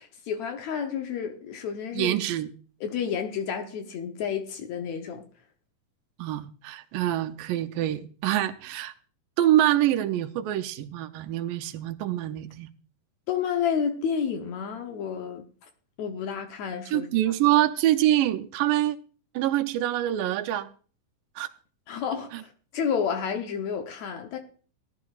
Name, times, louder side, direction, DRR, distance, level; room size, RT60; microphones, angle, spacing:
voice 1, 0.0-2.2 2.8-5.3 13.3-15.4 16.0-17.3 21.9-24.4, left 7 dB, 70° left, 1.9 m, -30 dB
voice 2, 1.9-2.5 6.2-8.9 9.4-12.7 16.9-19.0 19.3-20.7 21.4-21.5 22.3-22.4, right 13 dB, 90° right, 2.4 m, -25 dB
18.0 x 11.5 x 2.4 m
omnidirectional pair, 3.8 m